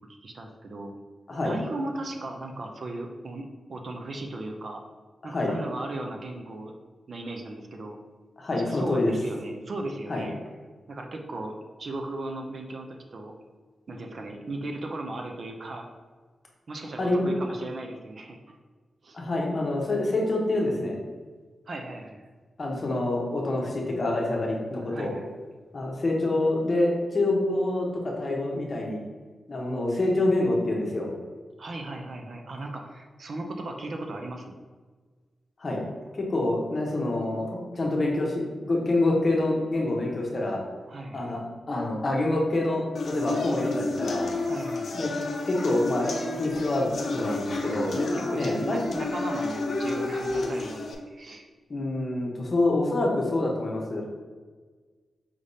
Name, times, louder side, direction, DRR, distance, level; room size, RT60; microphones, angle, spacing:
voice 1, 0.2-1.0 1.4-4.8 5.2-6.7 7.1-8.0 8.5-10.4 10.9-13.3 13.9-15.9 16.7-18.6 19.0-19.2 21.7-22.2 24.9-25.4 31.6-34.6 40.9-41.3 44.4-45.0 48.1-51.4, right 2 dB, 45° right, 2 dB, 0.4 m, -36 dB
voice 2, 8.4-9.1 10.1-10.2 17.0-17.3 19.1-21.0 22.6-25.1 25.7-29.0 29.5-31.1 35.6-35.8 36.2-40.6 41.1-41.4 41.7-44.3 44.9-45.1 45.5-49.0 51.7-54.1, left 2 dB, 40° left, -1 dB, 0.8 m, -26 dB
sound 1, 43.0-50.9, left 2 dB, 65° left, 0.6 m, -31 dB
5.0 x 3.4 x 2.7 m, 1.4 s
wide cardioid pair, 160°, 0 cm